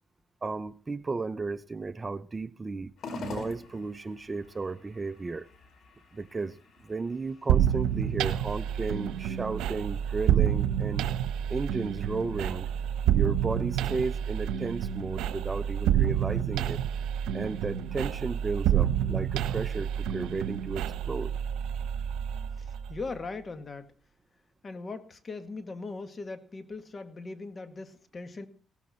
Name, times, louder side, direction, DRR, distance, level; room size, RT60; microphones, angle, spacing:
voice 1, 0.4-5.5 6.1-6.6 6.8-11.1 11.5-12.7 13.1-16.8 17.3-21.3, right 3 dB, 25° right, 0.7 m, -34 dB
sound 1, 3.0-21.6, left 3 dB, 65° left, 4.9 m, -51 dB
sound 2, 7.5-23.1, right 10 dB, 90° right, 1.0 m, -28 dB
voice 2, 22.6-23.9 24.6-28.5, left 3 dB, 35° left, 2.1 m, -39 dB
17.5 x 14.5 x 4.4 m
cardioid pair, 90°, 0 cm